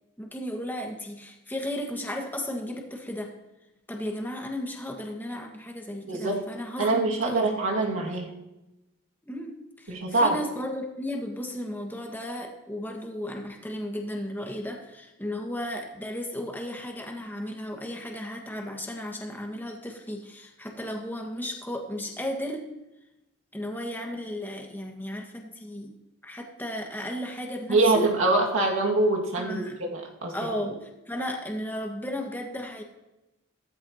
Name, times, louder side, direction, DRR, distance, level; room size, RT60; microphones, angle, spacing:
voice 1, 0.2-3.3 3.9-7.5 7.9-8.2 9.2-22.7 23.5-26.0 26.2-28.0 29.4-29.8 30.3-32.8, left 1 dB, 10° left, 1 dB, 1.6 m, -35 dB
voice 2, 6.1-6.4 6.8-8.3 9.9-10.4 27.7-30.3, right 2 dB, 70° right, -1 dB, 2.2 m, -24 dB
16.0 x 14.0 x 2.9 m, 0.96 s
head